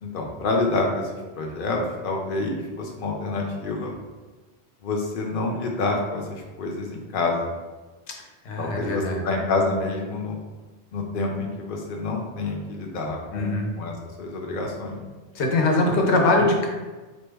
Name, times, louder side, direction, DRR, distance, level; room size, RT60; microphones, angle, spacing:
voice 1, 0.0-3.9 4.8-7.4 8.6-10.4 10.9-13.9 14.2-15.0 16.4-16.5, left 3 dB, 60° left, 0 dB, 0.8 m, -28 dB
voice 2, 8.4-9.4 13.3-13.7 15.3-16.7, left 2 dB, 85° left, 1 dB, 1.0 m, -22 dB
4.3 x 2.1 x 3.4 m, 1.3 s
omnidirectional pair, 1.1 m